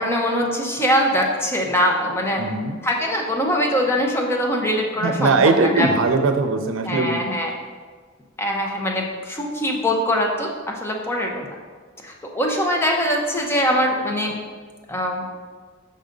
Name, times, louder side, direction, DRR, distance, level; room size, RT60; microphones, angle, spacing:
voice 1, 0.0-2.4 2.8-5.9 6.9-7.5 8.4-11.5 12.0-14.4 14.9-15.3, equal, 10° left, 0 dB, 0.7 m, -22 dB
voice 2, 2.4-2.8 5.0-7.2, right 3 dB, 85° right, 7 dB, 0.6 m, -20 dB
5.6 x 3.8 x 5.1 m, 1.5 s
head